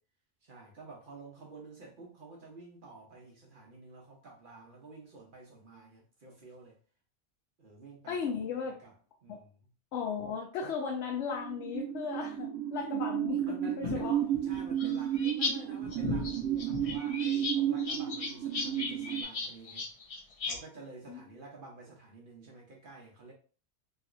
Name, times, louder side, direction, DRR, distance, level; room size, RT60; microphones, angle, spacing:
voice 1, 0.4-6.8 7.6-8.3 8.6-8.9 9.2-9.5 13.4-19.9 20.4-23.3, right 3 dB, 55° right, 0.9 m, -50 dB
voice 2, 8.1-8.8 9.3-9.4 9.9-14.2 21.1-21.2, left 6 dB, 80° left, 0.9 m, -36 dB
sound 1, 11.1-19.2, right 11 dB, 85° right, 1.0 m, -33 dB
sound 2, 13.8-15.5 15.8-20.6, left 4 dB, 50° left, 0.4 m, -36 dB
3.0 x 2.8 x 2.4 m
omnidirectional pair, 1.2 m